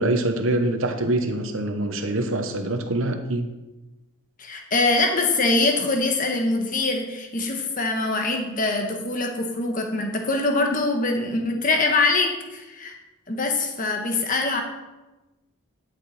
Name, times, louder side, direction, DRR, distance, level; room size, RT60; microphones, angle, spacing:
voice 1, 0.0-3.5, right 1 dB, 65° right, 6 dB, 1.1 m, -24 dB
voice 2, 4.4-12.9 13.3-14.6, left 3 dB, 35° left, 3 dB, 1.3 m, -23 dB
11.5 x 6.7 x 4.3 m, 1.1 s
head